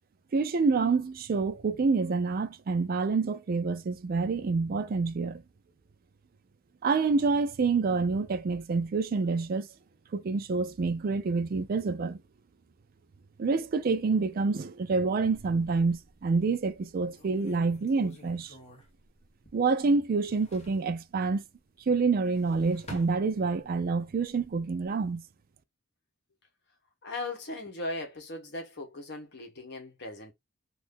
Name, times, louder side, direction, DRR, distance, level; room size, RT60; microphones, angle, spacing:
voice 1, 0.3-5.4 6.8-9.7 10.1-12.2 13.4-18.5 19.5-21.4 21.9-25.2, right 4 dB, 45° right, 0.4 m, -27 dB
sound 1, 15.2-16.2 16.7-16.8 17.1-19.8 20.1-20.9 22.0-23.8 24.2-24.9, left 1 dB, 35° left, 1.0 m, -50 dB
voice 2, 27.0-30.3, left 2 dB, 55° left, 1.0 m, -38 dB
2.6 x 2.4 x 3.5 m
head